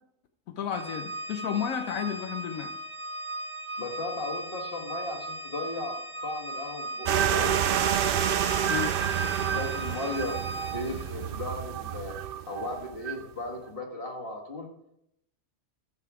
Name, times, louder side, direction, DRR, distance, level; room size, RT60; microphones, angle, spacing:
voice 1, 0.5-2.7 8.7-9.1, left 8 dB, 80° left, 6 dB, 1.1 m, -32 dB
Organ, 0.7-11.1, right 1 dB, 10° right, 0.6 m, -38 dB
voice 2, 3.8-7.6 9.4-12.2 12.5-14.7, left 2 dB, 40° left, 2 dB, 1.9 m, -36 dB
sound 1, 7.1-13.2, right 9 dB, 65° right, 0.5 m, -28 dB
14.0 x 6.9 x 4.8 m, 0.79 s
omnidirectional pair, 1.4 m